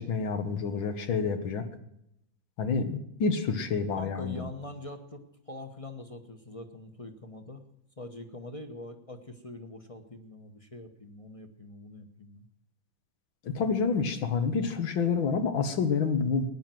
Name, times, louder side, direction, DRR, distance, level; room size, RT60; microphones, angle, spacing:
voice 1, 0.0-1.6 2.6-4.5 13.4-16.4, left 5 dB, 80° left, 8 dB, 2.3 m, -28 dB
voice 2, 4.0-7.6 8.0-12.5, left 2 dB, 25° left, 6 dB, 0.9 m, -44 dB
17.5 x 10.5 x 7.7 m, 0.80 s
omnidirectional pair, 2.1 m